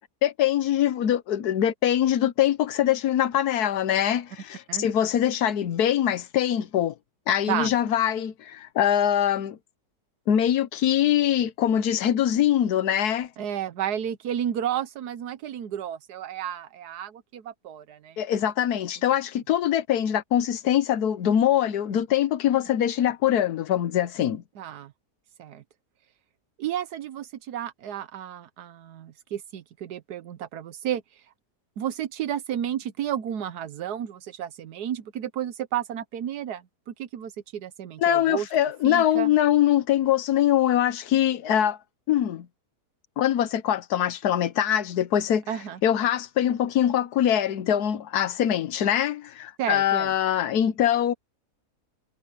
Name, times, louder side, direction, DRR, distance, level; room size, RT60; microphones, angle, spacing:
voice 1, 0.2-6.9 7.3-9.6 10.3-13.3 18.2-24.4 38.0-41.8 42.1-42.5 43.2-45.4 45.8-51.1, left 10 dB, 75° left, 1.4 m, -23 dB
voice 2, 13.4-18.2 24.6-24.9 25.4-25.6 26.6-31.2 31.8-38.5 38.8-39.3 45.5-45.8 49.6-50.1, right 10 dB, 85° right, 1.4 m, -32 dB
omnidirectional pair, 1.7 m